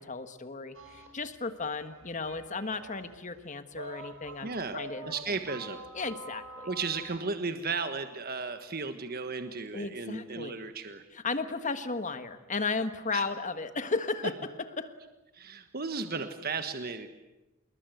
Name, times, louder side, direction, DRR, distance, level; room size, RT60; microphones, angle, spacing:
voice 1, 0.0-5.4 5.9-6.7 9.7-10.6 11.1-14.5 14.8-14.9, left 4 dB, 40° left, 10 dB, 1.5 m, -35 dB
sound 1, 0.7-7.2, right 2 dB, 80° right, 5.6 m, -46 dB
voice 2, 4.4-4.8 5.1-5.8 6.7-11.0 13.1-13.2 15.3-17.1, right 4 dB, 50° right, 8 dB, 1.4 m, -35 dB
27.0 x 21.5 x 9.3 m, 1.0 s
head